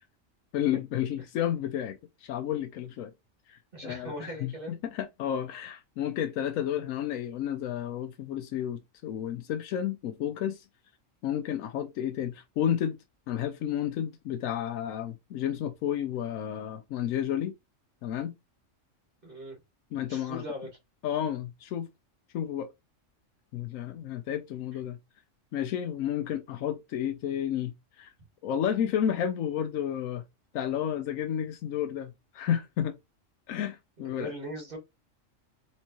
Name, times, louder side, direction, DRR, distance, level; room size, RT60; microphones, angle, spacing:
voice 1, 0.5-3.1 3.5-4.5 4.8-10.6 11.2-13.0 13.3-17.5 18.0-18.3 19.9-20.4 21.0-21.9 22.3-22.7 23.5-25.0 25.5-28.1 28.4-30.2 30.5-33.0 33.5-34.3, left 10 dB, 90° left, 1.0 m, -31 dB
voice 2, 3.7-4.8 19.2-19.6 20.1-20.7 34.2-34.8, equal, 45° right, 2.4 m, -39 dB
4.4 x 4.2 x 2.9 m
omnidirectional pair, 1.3 m